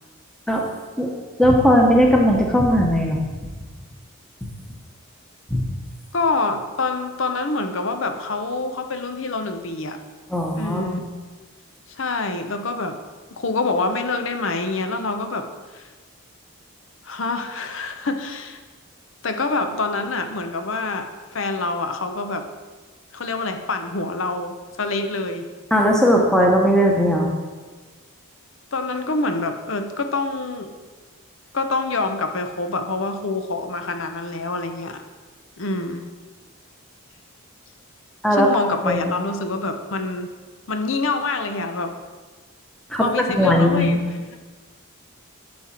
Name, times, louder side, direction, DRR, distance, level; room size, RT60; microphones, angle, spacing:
voice 1, 1.4-3.2 5.5-5.6 10.3-11.0 25.7-27.3 38.2-38.5 38.8-39.0 42.9-43.0 43.3-43.9, equal, 5° left, 0 dB, 1.1 m, -17 dB
voice 2, 6.1-10.0 10.5-11.0 11.9-13.0 13.3-15.5 15.7-15.8 17.0-18.6 19.2-22.4 23.1-25.5 28.7-30.7 31.5-35.0 35.6-36.0 38.3-40.3 40.7-41.9 43.0-44.0, left 3 dB, 65° left, 7 dB, 0.8 m, -26 dB
8.7 x 7.5 x 4.4 m, 1.4 s
head